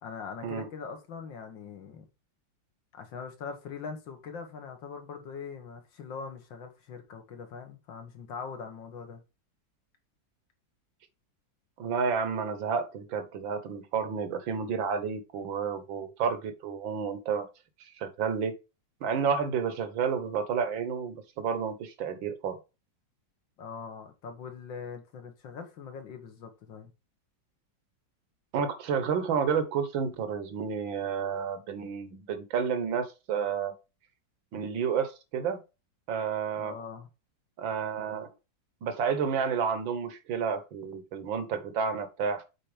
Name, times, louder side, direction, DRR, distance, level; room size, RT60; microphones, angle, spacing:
voice 1, 0.0-2.0 2.9-9.2 23.6-26.9 36.6-37.1, left 5 dB, 75° left, 2.2 m, -42 dB
voice 2, 11.8-17.5 18.0-18.5 19.0-22.6 28.5-33.7 34.5-35.6 36.1-36.8 37.6-38.3 38.8-42.4, right 6 dB, 85° right, 2.0 m, -30 dB
7.5 x 4.4 x 5.0 m
omnidirectional pair, 2.0 m